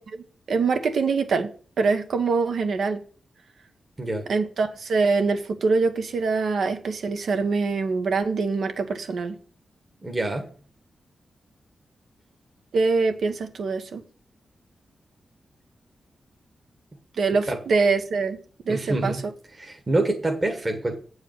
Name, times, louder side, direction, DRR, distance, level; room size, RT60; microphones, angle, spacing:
voice 1, 0.1-1.5 1.8-3.0 4.3-9.4 12.7-14.0 17.2-18.4 18.7-19.1, right 4 dB, 70° right, 7 dB, 1.4 m, -24 dB
voice 2, 10.0-10.5 17.5-17.6 18.7-19.2 19.6-21.0, right 2 dB, 25° right, 2 dB, 1.4 m, -26 dB
9.0 x 4.8 x 7.6 m, 0.41 s
wide cardioid pair, 155°, 0 cm